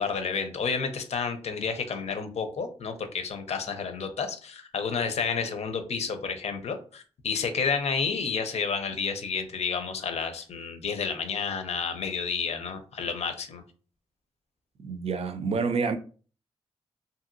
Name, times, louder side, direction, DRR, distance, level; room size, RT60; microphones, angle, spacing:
voice 1, 0.0-13.6, left 5 dB, 85° left, 0.5 m, -30 dB
voice 2, 14.8-15.9, right 5 dB, 70° right, 0.4 m, -28 dB
2.8 x 2.7 x 2.5 m
cardioid pair, 80°, 11 cm